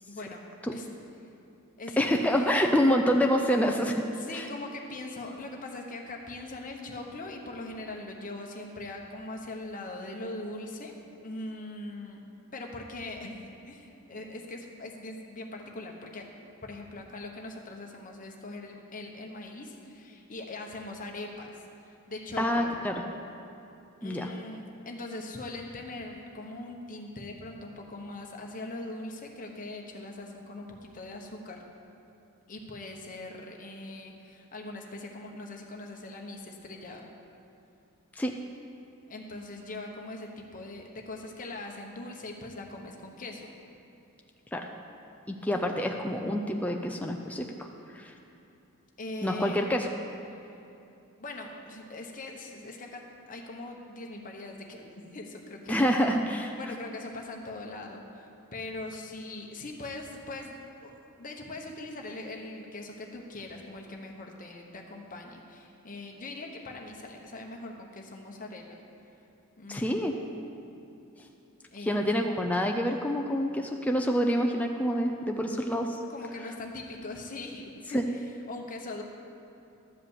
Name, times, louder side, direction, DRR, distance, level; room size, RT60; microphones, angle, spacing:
voice 1, 0.1-0.9 1.8-2.7 4.2-12.2 12.5-22.7 24.0-31.6 32.5-37.1 39.1-43.5 45.4-45.7 49.0-49.6 51.2-55.9 56.6-60.6 60.8-60.9 61.2-68.8 69.6-70.2 71.7-72.2 76.1-79.0, left 2 dB, 40° left, 1 dB, 1.1 m, -41 dB
voice 2, 2.0-4.0 4.3-4.5 22.4-22.9 24.0-24.3 38.2-38.3 44.5-44.7 45.3-47.7 47.9-48.1 49.2-49.9 55.7-56.5 69.7-70.1 71.9-76.0 77.9-78.1, equal, 5° left, 2 dB, 0.4 m, -27 dB
12.5 x 5.0 x 8.0 m, 2.7 s
head